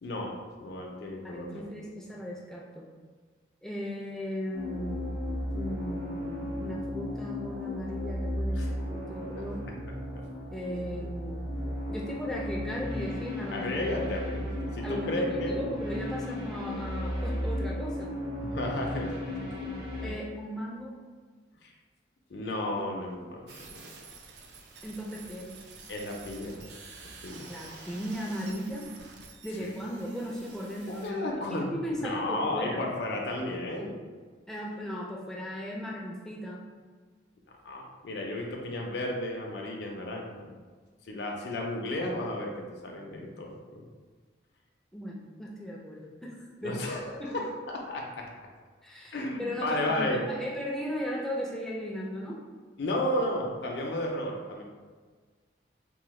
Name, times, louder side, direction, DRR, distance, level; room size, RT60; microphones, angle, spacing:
voice 1, 0.0-1.7 8.6-8.7 10.1-10.2 13.5-15.7 18.4-19.2 19.6-19.7 21.6-21.7 22.3-23.9 25.9-26.6 27.2-27.5 29.6-29.7 30.9-31.7 32.0-34.0 37.7-40.5 41.1-43.8 46.6-48.3 49.1-50.2 52.8-54.6, left 1 dB, 65° left, -1 dB, 0.4 m, -33 dB
voice 2, 1.2-2.9 3.6-5.1 5.5-9.6 10.5-11.5 11.9-13.7 14.8-18.1 20.0-21.0 24.8-25.6 27.5-28.9 29.4-32.8 34.5-36.7 44.9-46.8 47.2-47.3 48.8-52.4, equal, 5° left, -3 dB, 0.3 m, -37 dB
sound 1, 4.5-20.1, left 1 dB, 55° right, 0.8 m, -35 dB
sound 2, 23.5-31.1, right 4 dB, 70° right, 0.4 m, -49 dB
3.7 x 2.0 x 3.1 m, 1.5 s
head